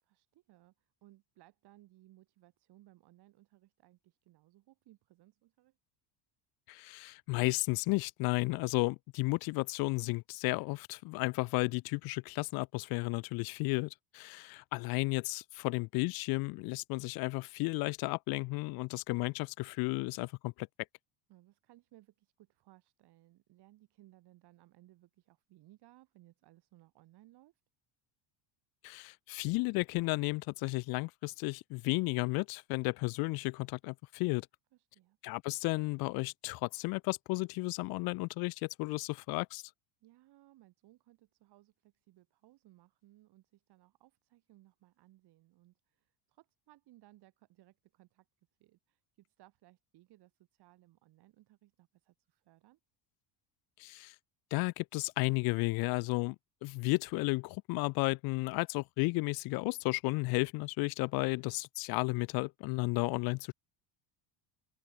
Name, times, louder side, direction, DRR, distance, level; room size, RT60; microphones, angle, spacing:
voice 1, 0.0-5.8 21.3-27.6 34.7-35.2 40.0-48.3 48.6-52.8, right 16 dB, 50° right, 4.1 m, -63 dB
voice 2, 6.7-20.7 28.8-34.5 35.2-39.6 53.8-54.1 54.5-56.4 56.6-63.5, left 25 dB, 50° left, 0.5 m, -33 dB
open air
cardioid pair, 145°, 49 cm